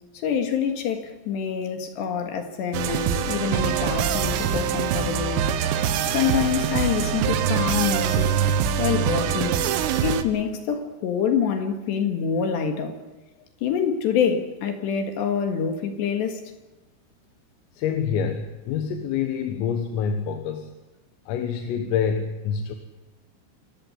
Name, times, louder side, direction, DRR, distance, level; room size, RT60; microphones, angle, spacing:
voice 1, 0.1-5.5 6.1-8.4 8.8-9.6 10.0-13.0 13.6-16.4, left 7 dB, 65° left, 3.7 m, -26 dB
sound 1, 2.7-10.2, right 8 dB, 80° right, 3.9 m, -24 dB
voice 2, 17.8-20.7 21.3-22.8, left 7 dB, 85° left, 4.1 m, -26 dB
27.5 x 15.0 x 9.7 m
omnidirectional pair, 5.9 m